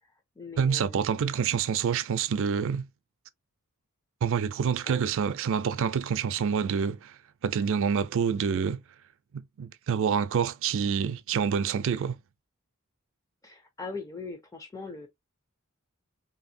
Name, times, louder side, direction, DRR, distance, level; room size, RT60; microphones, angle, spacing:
voice 1, 0.0-1.5 4.9-5.1 13.4-15.1, left 3 dB, 15° left, 0.4 m, -41 dB
voice 2, 0.6-2.9 4.2-7.1 7.4-8.8 9.3-12.2, right 7 dB, 60° right, 0.4 m, -27 dB
2.7 x 2.6 x 2.6 m
head